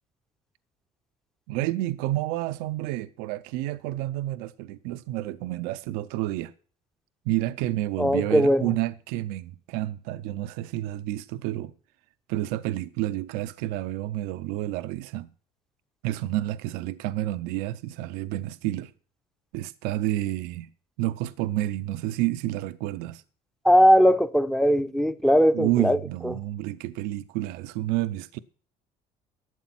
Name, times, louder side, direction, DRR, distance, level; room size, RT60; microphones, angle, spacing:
voice 1, 1.5-6.5 7.3-11.7 12.3-15.3 16.0-18.9 19.5-20.7 21.0-23.2 25.5-28.4, right 15 dB, 85° right, 0.6 m, -29 dB
voice 2, 8.0-8.7 23.6-26.0 26.2-26.3, equal, 5° left, 0.7 m, -19 dB
11.5 x 8.0 x 5.9 m
supercardioid pair, 95°, 15 cm